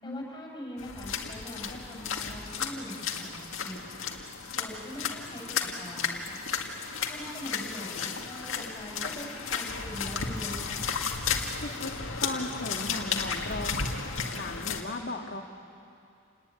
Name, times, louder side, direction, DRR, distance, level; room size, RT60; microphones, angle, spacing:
voice 1, 0.0-4.0 4.6-5.4 5.8-6.4 7.1-10.9, left 1 dB, 20° left, -2 dB, 6.5 m, -42 dB
sound 1, 0.8-14.8, left 5 dB, 75° left, 2.1 m, -34 dB
voice 2, 11.6-13.9 14.3-15.4, left 2 dB, 50° left, 3 dB, 2.1 m, -36 dB
29.0 x 19.5 x 9.8 m, 2.5 s
head